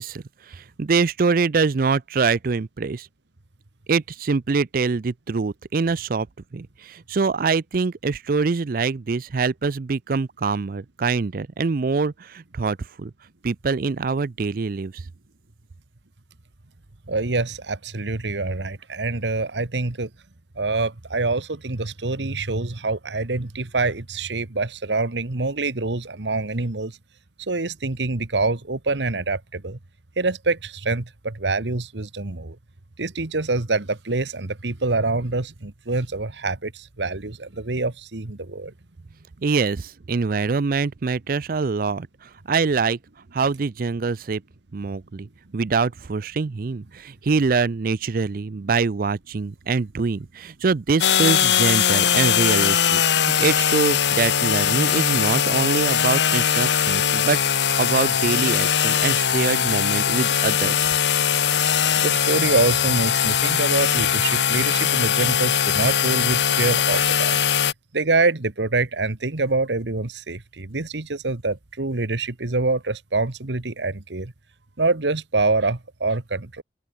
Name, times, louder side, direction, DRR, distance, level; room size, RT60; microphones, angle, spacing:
voice 1, 0.0-3.1 3.9-6.3 6.5-13.1 13.4-15.0 39.4-43.0 43.3-44.4 44.7-57.4 57.8-60.8, right 4 dB, 55° right, 0.5 m, -24 dB
voice 2, 17.1-20.1 20.6-27.0 27.4-29.8 30.2-32.6 33.0-38.7 62.0-67.4 67.9-74.3 74.8-76.6, right 3 dB, 90° right, 1.5 m, -25 dB
sound 1, 51.0-67.7, left 8 dB, 80° left, 1.1 m, -20 dB
open air
head